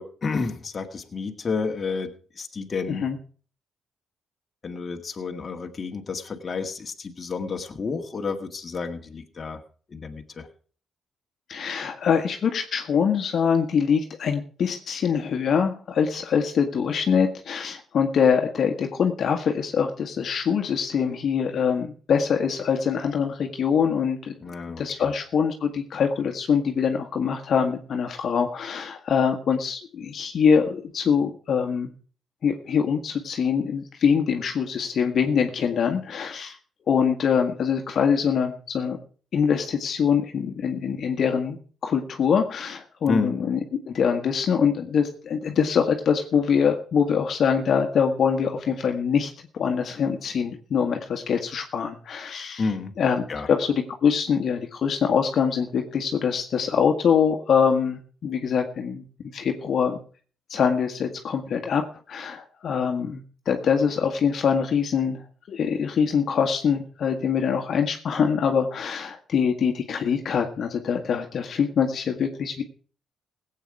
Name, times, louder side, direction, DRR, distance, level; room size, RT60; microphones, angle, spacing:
voice 1, 0.0-3.1 4.6-9.6 9.9-10.5 24.4-25.1 43.1-43.3 52.6-52.9 53.3-53.5, left 4 dB, 40° left, 4 dB, 1.9 m, -30 dB
voice 2, 11.5-24.3 24.8-31.9 32.4-36.6 36.9-39.0 39.3-41.6 41.8-43.6 43.9-52.6 53.0-59.1 59.3-60.0 60.5-61.8 62.1-72.6, left 7 dB, 60° left, 4 dB, 1.7 m, -24 dB
17.0 x 8.4 x 4.8 m, 0.42 s
cardioid pair, 90°, 0 cm